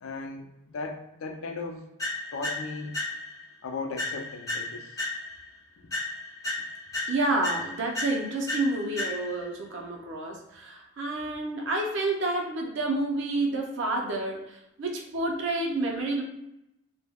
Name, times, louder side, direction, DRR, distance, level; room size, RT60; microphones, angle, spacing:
voice 1, 0.0-1.9 2.3-2.9 3.6-5.0, left 3 dB, 75° left, 3 dB, 0.4 m, -37 dB
sound 1, 2.0-3.5 4.0-5.5 5.9-9.5, left 2 dB, 15° left, 0.5 m, -34 dB
voice 2, 7.1-16.2, right 2 dB, 55° right, 1 dB, 0.5 m, -29 dB
2.2 x 2.1 x 3.4 m, 0.86 s
head